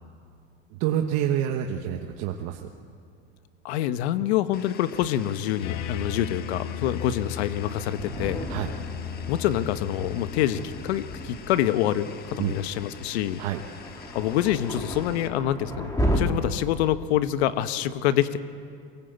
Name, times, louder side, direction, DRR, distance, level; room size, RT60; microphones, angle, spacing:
voice 1, 0.7-2.7 8.5-8.7 12.4-12.5 13.4-13.6, right 10 dB, 60° right, 4 dB, 1.3 m, -27 dB
voice 2, 3.6-8.5 9.3-13.4 14.1-18.4, left 12 dB, 90° left, 12 dB, 1.2 m, -26 dB
sound 1, 4.5-15.3, left 7 dB, 30° left, 1.4 m, -47 dB
sound 2, 5.6-11.3, left 8 dB, 55° left, 1.2 m, -36 dB
Thunder, 7.5-16.2, equal, 10° left, 2.8 m, -34 dB
23.5 x 17.5 x 8.1 m, 2.3 s
supercardioid pair, 135°, 32 cm